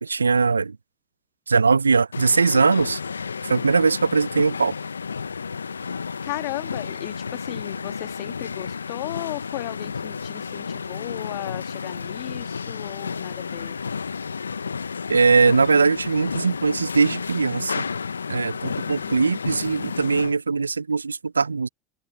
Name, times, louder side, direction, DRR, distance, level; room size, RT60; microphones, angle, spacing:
voice 1, 0.0-0.8 1.5-3.0 3.5-4.7 15.1-17.9 18.3-21.7, right 4 dB, 85° right, 0.9 m, -20 dB
sound 1, 2.1-20.4, left 5 dB, 85° left, 1.1 m, -32 dB
voice 2, 6.2-13.8 18.6-19.2, left 29 dB, 60° left, 1.8 m, -35 dB
figure-of-eight pair, 75°, 0 cm